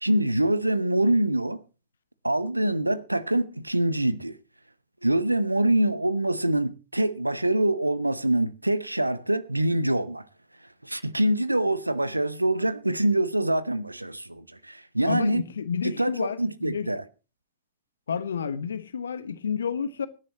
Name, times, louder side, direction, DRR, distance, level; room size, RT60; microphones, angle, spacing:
voice 1, 0.0-1.6 2.2-4.4 5.0-10.2 10.8-15.4 15.8-17.0, right 1 dB, 85° right, 0.8 m, -25 dB
voice 2, 15.1-16.4 16.7-16.9 18.1-20.1, left 7 dB, 70° left, 1.2 m, -30 dB
25.0 x 10.5 x 2.9 m
figure-of-eight pair, 90°, 0 cm